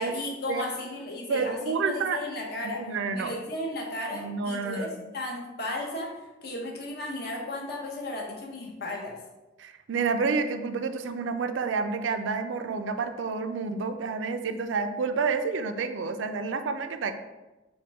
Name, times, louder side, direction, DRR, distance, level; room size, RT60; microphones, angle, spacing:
voice 1, 0.0-2.8 3.1-4.9 5.1-9.1, left 1 dB, 55° left, -1 dB, 0.9 m, -34 dB
voice 2, 1.3-2.2 2.8-3.3 4.1-4.9 9.6-17.1, right 4 dB, 85° right, 8 dB, 0.4 m, -29 dB
4.6 x 2.2 x 4.7 m, 1.1 s
head